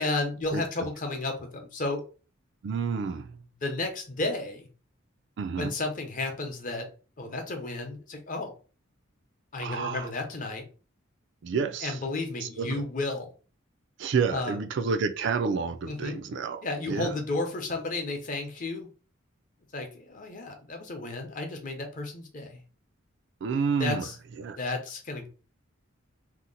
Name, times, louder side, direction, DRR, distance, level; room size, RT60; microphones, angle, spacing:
voice 1, 0.0-2.0 3.6-4.7 5.6-6.9 7.2-8.5 9.5-10.6 11.8-13.3 14.3-14.6 15.9-16.2 16.6-18.9 19.7-22.6 23.8-24.2 24.6-25.3, left 2 dB, 40° left, 0.7 m, -32 dB
voice 2, 2.6-3.4 5.4-5.7 9.6-10.1 11.4-12.0 12.4-12.8 14.0-17.1 23.4-24.0 24.4-24.6, right 5 dB, 60° right, 0.4 m, -29 dB
2.8 x 2.1 x 3.8 m
head